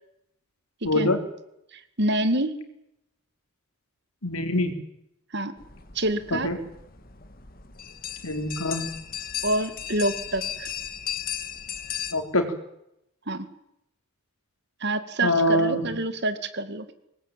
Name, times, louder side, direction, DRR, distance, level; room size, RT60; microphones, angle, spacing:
voice 1, 0.8-1.2 4.2-4.7 6.3-6.6 8.2-8.9 12.1-12.5 15.2-15.9, left 1 dB, 90° left, 6 dB, 4.2 m, -24 dB
voice 2, 2.0-2.6 5.3-5.5 6.0-6.5 9.4-10.7 13.3-13.5 14.8-16.9, right 1 dB, 50° right, 11 dB, 2.2 m, -27 dB
sound 1, 5.6-12.1, left 10 dB, 45° left, 2.0 m, -36 dB
24.5 x 20.0 x 9.2 m, 0.82 s
head